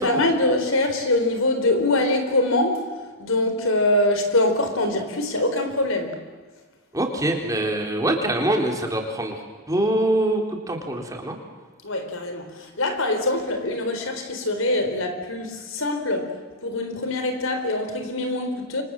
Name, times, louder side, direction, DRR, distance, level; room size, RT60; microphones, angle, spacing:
voice 1, 0.0-2.9 3.2-6.2 11.8-18.8, left 2 dB, 80° left, 4.2 m, -23 dB
voice 2, 6.9-9.4 9.7-11.4, right 1 dB, 15° right, 3.8 m, -24 dB
28.0 x 25.5 x 7.8 m
head